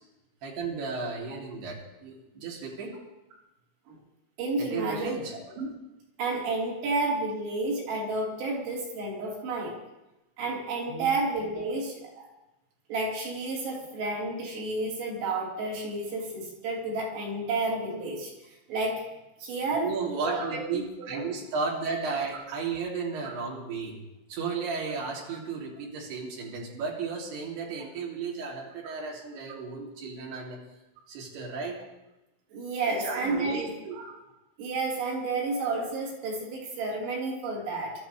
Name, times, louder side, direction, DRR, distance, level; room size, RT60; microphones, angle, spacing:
voice 1, 0.4-2.9 4.6-5.3 10.9-11.1 19.7-24.0 24.3-30.6 31.1-31.8 32.9-34.0, right 4 dB, 55° right, -3 dB, 4.8 m, -34 dB
voice 2, 4.4-5.2 5.6-5.7 6.2-9.8 10.4-12.3 12.9-18.3 18.7-19.0 19.4-19.9 20.2-21.2 23.2-23.3 32.5-34.1 34.6-37.9, right 2 dB, 75° right, -5 dB, 7.0 m, -31 dB
27.5 x 13.0 x 3.4 m, 0.98 s
omnidirectional pair, 5.9 m